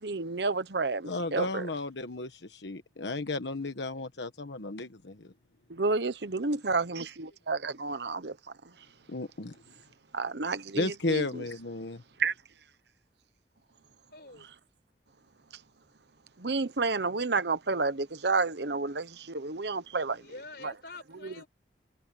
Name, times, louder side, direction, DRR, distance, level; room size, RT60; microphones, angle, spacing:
voice 1, 0.0-1.7 5.7-8.4 10.1-11.4 12.2-12.3 16.4-20.2 20.6-20.7 21.2-21.4, right 3 dB, 70° right, 1.1 m, -30 dB
voice 2, 1.0-5.3 9.1-9.6 10.7-12.0, left 2 dB, 85° left, 1.3 m, -34 dB
voice 3, 14.1-14.5 20.2-21.5, left 3 dB, 60° left, 5.4 m, -47 dB
head